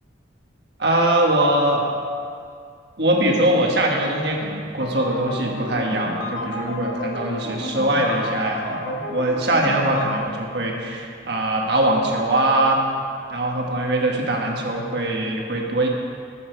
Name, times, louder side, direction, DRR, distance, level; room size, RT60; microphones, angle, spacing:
voice 1, 0.8-1.8 3.0-12.8 13.3-15.9, right 1 dB, 60° right, 0 dB, 1.5 m, -22 dB
sound 1, 4.8-10.2, left 1 dB, 75° left, 1.1 m, -32 dB
13.0 x 7.3 x 4.6 m, 2.3 s
head